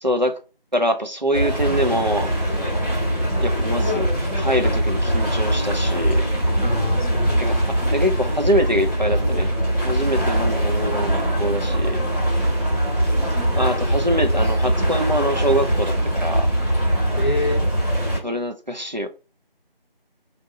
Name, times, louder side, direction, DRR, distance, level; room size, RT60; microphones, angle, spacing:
voice 1, 0.0-0.4 0.7-2.3 3.4-4.1 4.4-6.2 7.4-7.6 7.9-9.5 9.8-12.0 13.5-15.9 16.2-16.5 18.2-19.1, equal, 50° right, 0.4 m, -24 dB
sound 1, 1.3-18.2, right 1 dB, ahead, 1.0 m, -21 dB
voice 2, 6.6-7.7 17.2-17.6, left 3 dB, 55° left, 0.6 m, -27 dB
2.7 x 2.1 x 3.8 m
figure-of-eight pair, 175°, 30 cm